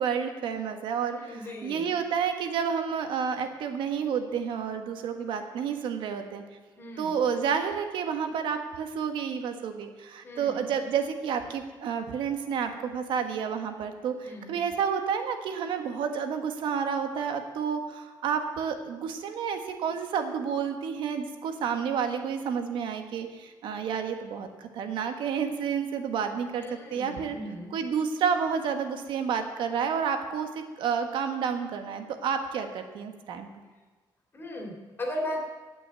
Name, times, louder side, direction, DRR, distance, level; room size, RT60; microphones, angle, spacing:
voice 1, 0.0-6.4 7.0-26.6 26.9-27.4 27.7-33.5, right 7 dB, 85° right, 6 dB, 1.4 m, -30 dB
voice 2, 1.3-1.9 6.8-7.2 10.2-10.6 14.2-14.5 26.5-27.7 34.3-35.4, left 1 dB, 25° left, 0 dB, 3.1 m, -37 dB
17.0 x 6.3 x 9.4 m, 1.3 s
cardioid pair, 155°, 8 cm